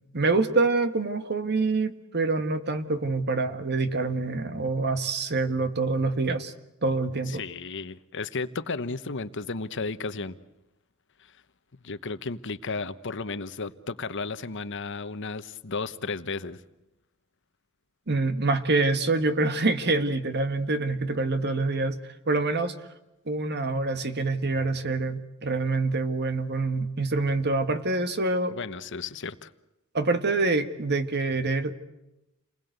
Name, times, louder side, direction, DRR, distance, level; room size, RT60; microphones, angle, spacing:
voice 1, 0.1-6.5 6.8-7.4 18.1-22.7 23.3-28.5 29.9-31.7, right 3 dB, 50° right, 10 dB, 1.7 m, -26 dB
voice 2, 7.3-10.4 11.8-16.6 28.5-29.5, left 4 dB, 60° left, 13 dB, 1.1 m, -34 dB
29.0 x 20.5 x 8.1 m, 0.95 s
head